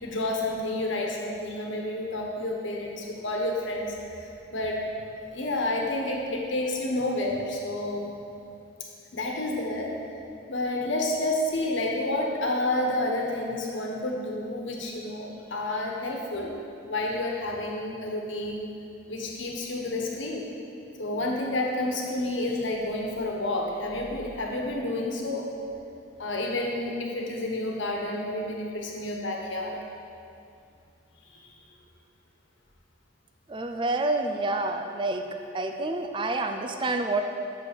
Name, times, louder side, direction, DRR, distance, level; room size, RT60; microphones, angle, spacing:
voice 1, 0.0-4.9 5.2-8.1 9.1-10.0 10.5-16.6 16.9-18.7 19.1-20.5 21.0-25.5 26.2-29.8 31.3-31.5, left 1 dB, 80° left, 0 dB, 1.3 m, -30 dB
voice 2, 33.5-35.3 35.5-37.2, right 2 dB, 25° right, 5 dB, 0.4 m, -28 dB
6.8 x 6.2 x 6.9 m, 2.6 s
head